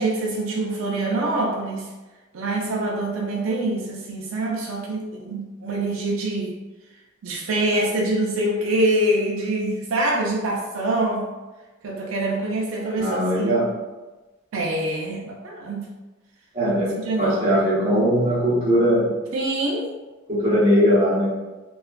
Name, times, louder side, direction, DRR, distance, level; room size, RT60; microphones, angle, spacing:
voice 1, 0.0-1.9 2.3-6.6 7.2-11.3 11.8-13.5 14.5-15.9 17.0-17.6 19.3-19.9, right 1 dB, 80° right, -2 dB, 0.4 m, -25 dB
voice 2, 13.0-13.7 16.5-19.1 20.3-21.3, equal, 30° right, -8 dB, 1.0 m, -20 dB
2.8 x 2.3 x 2.4 m, 1.2 s
head